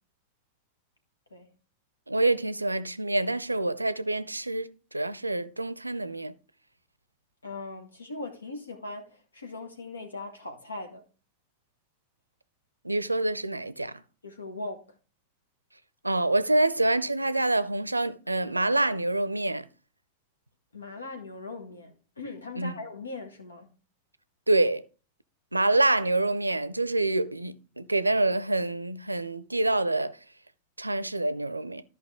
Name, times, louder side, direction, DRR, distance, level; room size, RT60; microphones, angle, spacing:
voice 1, 2.1-6.4 12.8-14.0 16.0-19.7 22.6-22.7 24.5-24.8 25.5-30.2 30.8-31.8, right 2 dB, 90° right, 0.5 m, -26 dB
voice 2, 7.4-11.0 14.2-14.9 20.7-23.7, left 2 dB, 80° left, 1.6 m, -39 dB
13.5 x 5.3 x 3.6 m
figure-of-eight pair, 90°, 0 cm